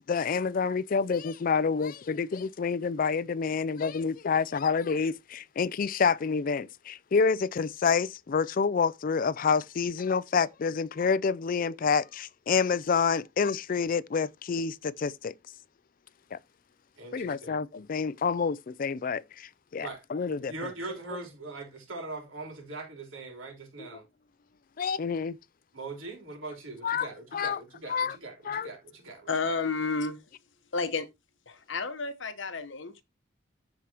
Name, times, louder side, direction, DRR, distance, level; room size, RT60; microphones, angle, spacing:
voice 1, 0.1-15.3 16.3-16.4 17.1-20.7 23.8-24.0 24.8-25.4 26.8-27.6 27.9-28.2 28.4-28.7, left 5 dB, 45° left, 0.4 m, -28 dB
voice 2, 17.0-17.6 19.8-20.0 20.5-24.1 25.7-29.6, right 3 dB, 80° right, 3.6 m, -41 dB
voice 3, 29.3-30.2 30.7-31.1 31.5-33.0, left 4 dB, 65° left, 1.1 m, -31 dB
14.0 x 4.8 x 2.9 m
head